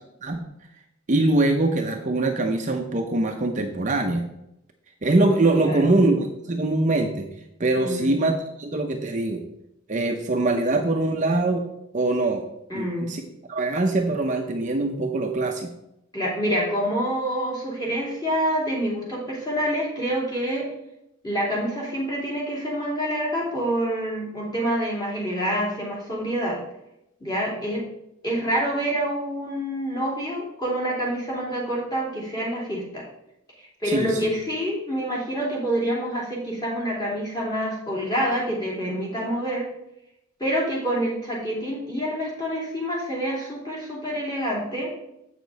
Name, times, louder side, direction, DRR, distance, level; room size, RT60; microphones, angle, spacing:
voice 1, 1.1-4.2 5.0-7.3 7.6-9.4 9.9-11.6 11.9-12.4 12.7-13.2 13.5-15.7 33.8-34.2, right 2 dB, 35° right, 3 dB, 0.7 m, -23 dB
voice 2, 5.5-5.9 7.8-8.1 12.7-13.1 16.1-20.6 21.2-26.6 27.2-27.8 28.2-33.0 33.6-39.6 40.4-44.9, equal, 20° left, -4 dB, 2.9 m, -27 dB
8.3 x 6.6 x 4.1 m, 0.82 s
head